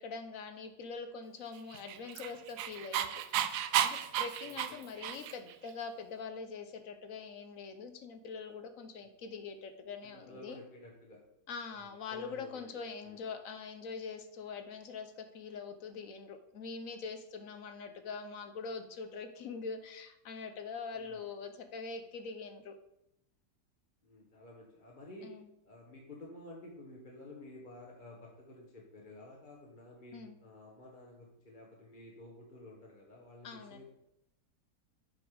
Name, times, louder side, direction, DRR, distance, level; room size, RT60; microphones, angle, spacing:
voice 1, 0.0-3.2 3.8-10.6 11.5-22.8 25.2-25.5 30.1-30.4 33.4-33.8, left 5 dB, 60° left, 8 dB, 1.0 m, -43 dB
Dog, 1.7-5.5, right 10 dB, 75° right, 1.1 m, -33 dB
voice 2, 4.4-4.9 10.0-11.2 11.7-12.7 13.0-13.2 21.0-21.2 24.0-25.3 25.6-33.8, left 1 dB, 30° left, -2 dB, 1.2 m, -52 dB
7.8 x 5.2 x 5.0 m, 0.82 s
omnidirectional pair, 1.9 m